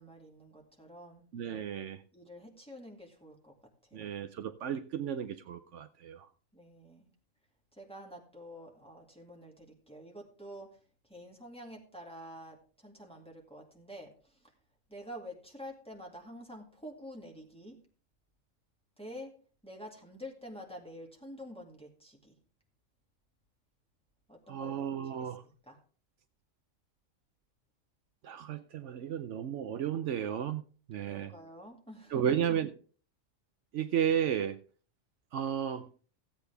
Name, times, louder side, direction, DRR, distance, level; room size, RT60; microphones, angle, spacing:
voice 1, 0.0-1.3 2.1-3.5 3.8-4.1 6.5-7.1 7.7-10.8 11.0-14.5 14.9-17.8 19.0-19.3 19.6-22.4 24.3-25.8 31.0-32.4, equal, 5° left, 2.1 m, -48 dB
voice 2, 1.3-2.0 3.9-6.3 24.5-25.4 28.2-31.3 32.1-32.7 33.7-34.6 35.3-35.9, right 9 dB, 70° right, 0.9 m, -33 dB
15.0 x 8.3 x 3.4 m
omnidirectional pair, 1.3 m